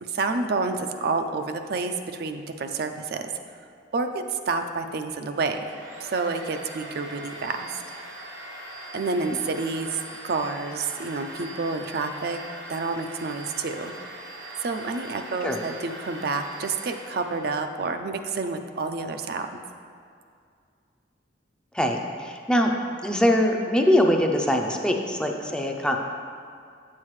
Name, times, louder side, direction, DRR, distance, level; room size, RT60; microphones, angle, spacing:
voice 1, 0.0-3.3 3.9-5.7 6.0-7.7 8.9-12.4 12.7-13.9 14.6-19.5, right 3 dB, 55° right, 6 dB, 0.4 m, -29 dB
Domestic sounds home sounds, 5.5-17.6, right 1 dB, 90° right, 1.2 m, -41 dB
voice 2, 21.7-22.7 23.0-26.0, equal, 5° left, 2 dB, 0.4 m, -22 dB
8.5 x 7.4 x 3.1 m, 2.3 s
head